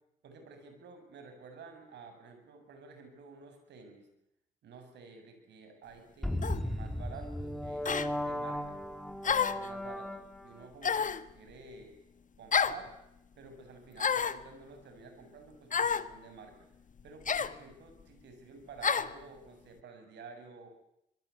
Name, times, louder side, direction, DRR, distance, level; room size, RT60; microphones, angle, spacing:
voice 1, 0.2-4.1 4.6-8.8 9.2-12.0 12.4-12.9 13.4-16.7 17.0-20.7, right 4 dB, 70° right, 6 dB, 7.8 m, -51 dB
sound 1, 6.2-10.6, left 1 dB, ahead, 3.3 m, -36 dB
sound 2, 6.4-6.6 7.8-8.1 9.2-9.7 10.8-11.2 12.5-12.8 14.0-14.4 15.7-16.1 17.2-17.5 18.8-19.1, left 6 dB, 45° left, 1.6 m, -29 dB
26.0 x 23.5 x 8.6 m, 0.80 s
hypercardioid pair, 50°, 19 cm